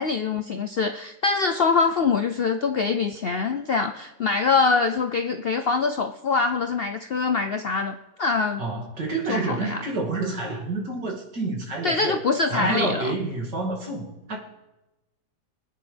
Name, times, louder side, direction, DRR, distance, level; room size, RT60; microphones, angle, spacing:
voice 1, 0.0-8.6 9.3-9.8 11.8-13.1, left 4 dB, 70° left, 6 dB, 0.5 m, -24 dB
voice 2, 8.6-12.2 12.5-14.4, right 3 dB, 85° right, -2 dB, 3.2 m, -28 dB
24.5 x 10.0 x 3.4 m, 1.0 s
omnidirectional pair, 1.8 m